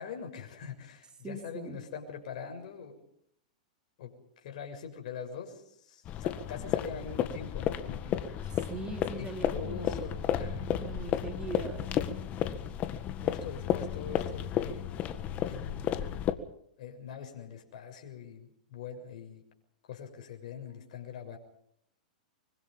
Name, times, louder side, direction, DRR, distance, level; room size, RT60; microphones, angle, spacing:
voice 1, 0.0-3.0 4.0-4.1 4.4-8.4 9.1-10.8 13.1-14.9 15.4-15.9 16.8-19.4 19.9-21.4, left 7 dB, 60° left, 4 dB, 6.8 m, -43 dB
voice 2, 1.2-1.8 8.5-10.0 10.8-11.9, right 3 dB, 20° right, 5 dB, 4.1 m, -41 dB
sound 1, 6.0-16.3, left 10 dB, 35° left, 1.9 m, -32 dB
24.5 x 24.0 x 5.4 m, 0.71 s
hypercardioid pair, 110°, 4 cm